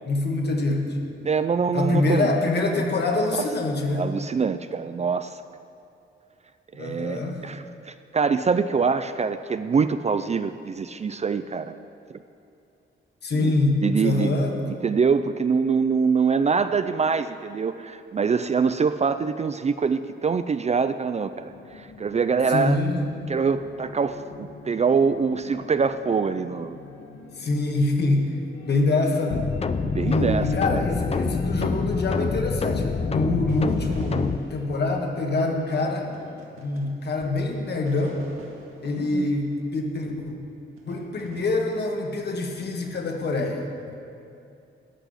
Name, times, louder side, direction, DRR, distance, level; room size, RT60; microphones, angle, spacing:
voice 1, 0.0-0.9 1.7-4.0 6.8-7.4 13.2-14.6 22.5-23.0 27.4-28.2 28.6-29.5 30.0-36.1 36.6-38.2 38.8-40.3 40.9-43.9, left 2 dB, 55° left, 1 dB, 1.8 m, -25 dB
voice 2, 1.2-2.3 3.9-5.3 6.8-11.7 13.3-14.4 14.8-22.8 23.3-26.8 29.8-30.8 39.0-39.3, right 5 dB, 35° right, 11 dB, 0.4 m, -24 dB
sound 1, 21.3-36.4, left 5 dB, 80° left, 1.0 m, -46 dB
sound 2, 29.3-34.4, left 5 dB, 30° left, 0.5 m, -26 dB
sound 3, 33.5-37.4 37.9-40.3 40.8-41.6, right 2 dB, 85° right, 2.1 m, -47 dB
13.5 x 6.1 x 9.8 m, 2.6 s
wide cardioid pair, 125°, 21 cm